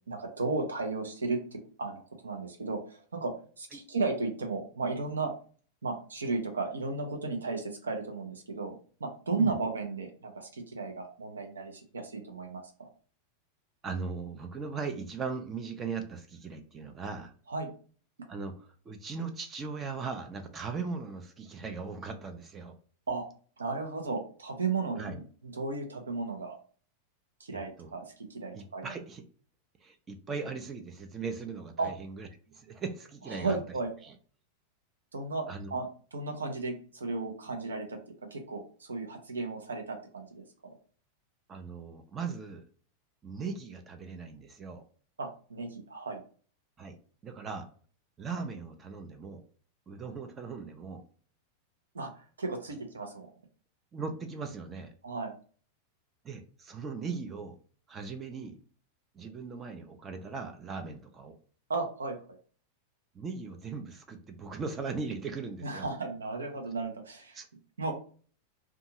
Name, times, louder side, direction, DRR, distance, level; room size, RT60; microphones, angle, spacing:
voice 1, 0.1-5.3 5.8-12.9 17.5-17.7 23.1-23.3 23.6-26.6 27.4-28.9 31.8-31.9 33.3-33.9 35.1-38.0 38.3-40.7 45.2-46.2 51.9-53.3 55.0-55.3 61.7-62.4 65.6-67.4 67.8-67.9, right 3 dB, 70° right, 3 dB, 0.7 m, -34 dB
voice 2, 13.8-17.3 18.3-22.7 25.0-25.2 27.5-27.9 28.5-29.2 29.8-33.6 34.0-34.1 35.5-35.7 41.5-42.6 43.2-44.8 46.8-47.0 47.2-47.7 48.2-49.4 49.9-51.0 53.9-54.9 56.2-57.6 57.9-58.6 59.1-61.4 63.1-65.9 67.3-67.5, right 4 dB, 20° right, 5 dB, 0.4 m, -39 dB
2.6 x 2.3 x 2.8 m, 0.42 s
figure-of-eight pair, 90°, 0 cm